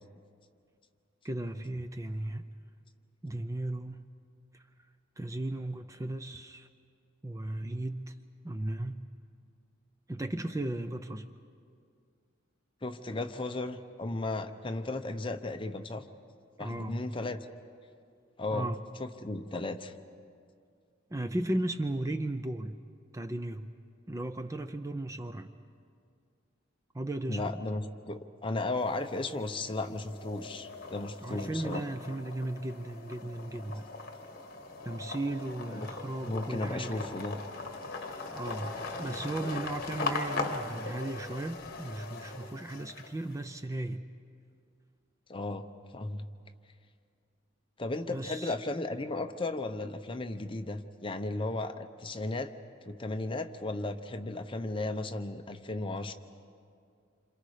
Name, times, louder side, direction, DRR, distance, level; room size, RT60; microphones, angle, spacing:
voice 1, 1.2-2.5 3.2-4.1 4.5-4.6 5.2-6.7 7.2-8.1 8.4-9.0 10.1-11.3 16.6-17.1 18.5-18.8 19.5-19.6 21.1-22.8 23.1-23.7 24.1-25.5 26.9-27.6 31.2-33.9 34.8-37.1 38.3-44.0 48.1-48.5, right 1 dB, 15° right, 9 dB, 0.5 m, -36 dB
voice 2, 12.8-16.0 16.6-17.4 18.4-18.7 19.0-19.9 27.3-31.8 35.7-35.9 36.2-37.4 45.3-45.7 45.9-46.2 47.8-52.5 52.8-56.1, left 2 dB, 25° left, 7 dB, 0.9 m, -35 dB
sound 1, 28.8-29.4 29.8-43.3, left 3 dB, 50° left, 1.7 m, -40 dB
28.0 x 26.5 x 5.0 m, 2.3 s
head